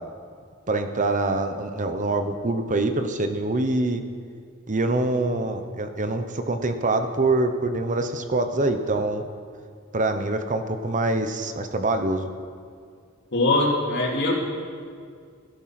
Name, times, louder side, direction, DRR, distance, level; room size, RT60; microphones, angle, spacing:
voice 1, 0.7-4.0 4.7-9.2 9.9-12.3, right 2 dB, 40° right, 7 dB, 0.9 m, -25 dB
voice 2, 13.3-14.3, left 2 dB, 60° left, -1 dB, 3.2 m, -22 dB
17.0 x 13.5 x 6.0 m, 2.2 s
head